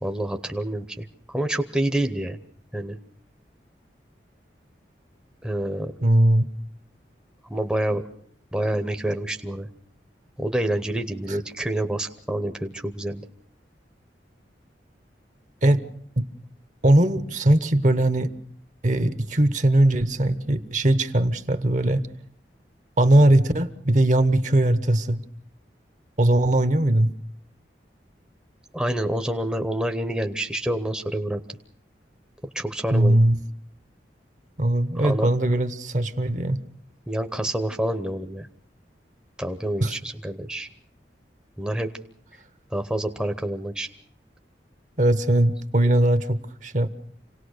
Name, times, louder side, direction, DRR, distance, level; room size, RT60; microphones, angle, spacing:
voice 1, 0.0-2.4 2.7-3.0 5.4-5.9 7.5-8.0 8.5-9.7 10.4-13.2 28.7-31.6 32.5-33.2 34.9-35.3 37.1-38.5 39.4-40.7 41.6-41.9 42.7-43.9, right 1 dB, 5° right, 6 dB, 0.8 m, -27 dB
voice 2, 6.0-6.5 15.6-15.8 16.2-16.3 16.8-18.3 18.8-22.1 23.0-25.2 26.2-27.1 32.9-33.4 34.6-36.6 39.8-40.0 45.0-46.9, right 1 dB, 45° right, 12 dB, 1.1 m, -20 dB
27.0 x 18.0 x 6.6 m, 0.64 s
head